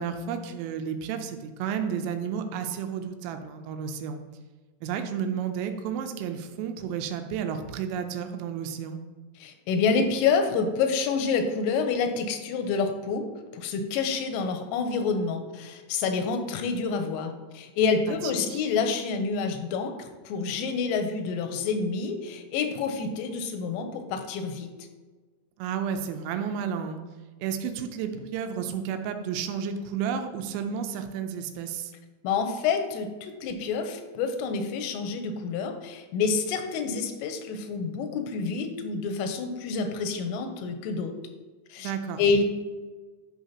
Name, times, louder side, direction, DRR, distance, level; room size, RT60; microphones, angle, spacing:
voice 1, 0.0-4.2 4.8-9.0 18.1-18.2 18.5-18.6 25.6-27.0 27.4-31.9 41.8-42.2, right 7 dB, 85° right, 7 dB, 3.2 m, -32 dB
voice 2, 9.4-13.2 13.5-24.7 32.2-41.1 41.7-41.9 42.2-42.4, left 5 dB, 85° left, 6 dB, 3.2 m, -28 dB
11.5 x 5.7 x 2.8 m, 1.3 s
omnidirectional pair, 6.0 m